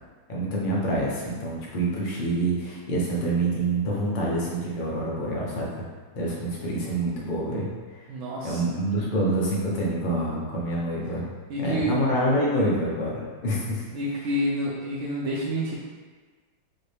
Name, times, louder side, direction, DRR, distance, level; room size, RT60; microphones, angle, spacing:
voice 1, 0.3-5.7 6.1-7.7 8.4-11.3 11.6-13.8, right 1 dB, 60° left, -4 dB, 0.5 m, -26 dB
voice 2, 8.1-8.6 11.5-12.0 13.9-15.7, equal, 90° right, -5 dB, 0.7 m, -28 dB
4.3 x 2.8 x 3.3 m, 1.5 s
omnidirectional pair, 2.0 m